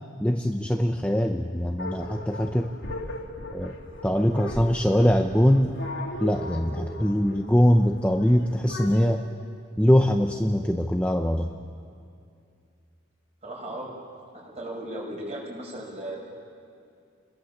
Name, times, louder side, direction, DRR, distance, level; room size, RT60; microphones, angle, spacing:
voice 1, 0.2-2.7 3.5-3.8 4.0-5.7 6.2-9.2 9.8-11.5, equal, 5° left, 3 dB, 0.7 m, -22 dB
sound 1, 1.8-9.0, left 1 dB, 65° left, 2.6 m, -38 dB
voice 2, 13.4-14.0 14.3-16.4, right 1 dB, 30° right, -2 dB, 6.3 m, -36 dB
29.5 x 21.5 x 7.2 m, 2.4 s
head